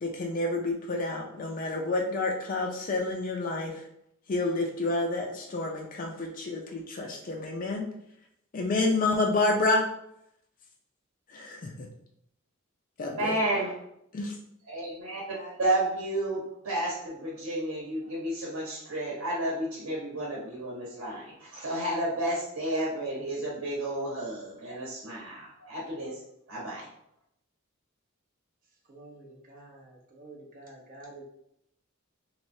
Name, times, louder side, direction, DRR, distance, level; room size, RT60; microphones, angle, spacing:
voice 1, 0.0-3.7 4.3-7.9 8.5-9.8 11.3-11.9 13.0-13.3 14.1-14.3, left 2 dB, 40° left, 0 dB, 0.4 m, -29 dB
voice 2, 13.2-13.7 14.7-26.2 26.5-26.9, right 1 dB, 85° right, -4 dB, 1.0 m, -31 dB
voice 3, 28.9-31.2, right 2 dB, 40° right, -2 dB, 0.8 m, -49 dB
3.3 x 3.1 x 2.6 m, 0.76 s
head